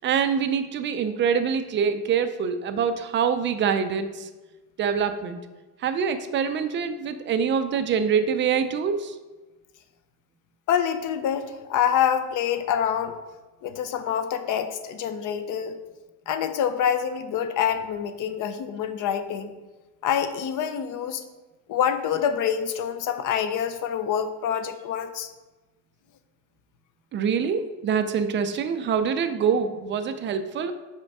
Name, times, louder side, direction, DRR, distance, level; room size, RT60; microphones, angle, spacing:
voice 1, 0.0-4.3 4.8-5.4 5.8-9.2 27.1-30.7, right 7 dB, 30° right, 9 dB, 0.4 m, -25 dB
voice 2, 10.7-13.2 13.6-15.8 16.3-19.5 20.0-21.2 21.7-25.3, left 8 dB, 45° left, 10 dB, 0.6 m, -26 dB
5.9 x 4.4 x 5.3 m, 1.2 s
cardioid pair, 140°, 44 cm